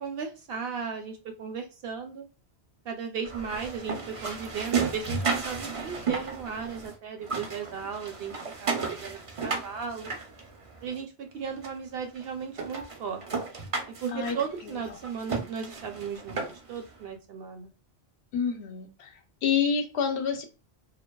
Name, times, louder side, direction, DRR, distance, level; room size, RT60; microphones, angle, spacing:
voice 1, 0.0-2.2 2.8-8.3 8.6-10.1 10.8-13.2 13.9-17.7, right 6 dB, 65° right, 4 dB, 0.8 m, -36 dB
sound 1, 3.2-6.9 7.2-11.0 11.6-11.7 12.2-12.3 12.6-16.8, right 5 dB, 45° right, 0.4 m, -33 dB
voice 2, 18.3-19.1 19.4-20.4, left 6 dB, 80° left, 4 dB, 0.8 m, -28 dB
2.5 x 2.2 x 2.2 m, 0.32 s
omnidirectional pair, 1.1 m